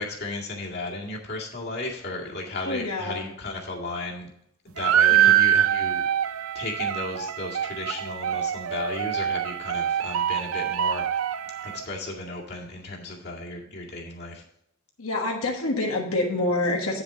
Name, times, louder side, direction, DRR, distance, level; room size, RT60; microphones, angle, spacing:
voice 1, 0.0-4.3 4.6-11.1 11.6-14.4, left 2 dB, 50° left, -1 dB, 2.1 m, -34 dB
voice 2, 2.6-3.3 5.1-5.3 15.0-17.0, left 2 dB, 85° left, 0 dB, 1.5 m, -27 dB
sound 1, 4.8-11.8, right 11 dB, 85° right, 0.5 m, -24 dB
9.4 x 7.2 x 3.9 m, 0.73 s
head